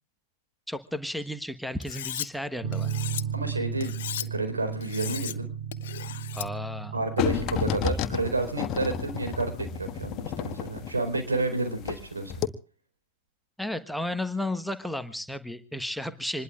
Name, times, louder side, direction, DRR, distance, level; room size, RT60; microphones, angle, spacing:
voice 1, 0.7-2.9 6.3-7.0 13.6-16.4, left 1 dB, ahead, 9 dB, 1.2 m, -33 dB
Cutlery silverware, 1.8-2.3 2.7-3.2 3.8-4.3 4.8-5.4 5.7-6.5, left 12 dB, 60° left, 0.9 m, -36 dB
sound 1, 2.6-10.3, right 8 dB, 45° right, 3.2 m, -36 dB
voice 2, 3.3-5.5 6.9-12.3, right 2 dB, 75° right, 8 dB, 4.3 m, -30 dB
sound 2, 7.2-12.0 12.3-12.5, left 8 dB, 35° left, 1.4 m, -31 dB
26.5 x 21.0 x 2.4 m, 0.39 s
figure-of-eight pair, 90°, 0 cm